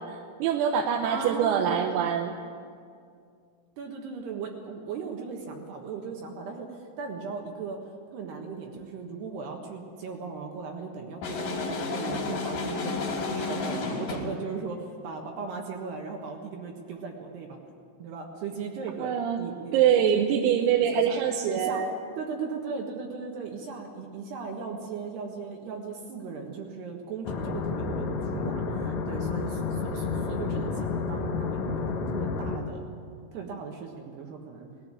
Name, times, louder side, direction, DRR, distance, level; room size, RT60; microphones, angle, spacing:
voice 1, 0.0-2.3 19.0-19.4 19.7-21.9, right 8 dB, 90° right, 3 dB, 3.7 m, -24 dB
voice 2, 1.0-2.0 3.8-7.8 8.1-17.6 18.0-19.8 20.1-20.3 20.8-21.2 21.5-21.9 22.2-32.9 33.3-34.7, right 5 dB, 65° right, 1 dB, 3.1 m, -37 dB
sound 1, 11.2-14.4, left 3 dB, 50° left, 4.7 m, -31 dB
sound 2, 27.2-32.6, left 4 dB, 85° left, 1.6 m, -30 dB
19.5 x 15.0 x 9.8 m, 2.3 s
omnidirectional pair, 5.9 m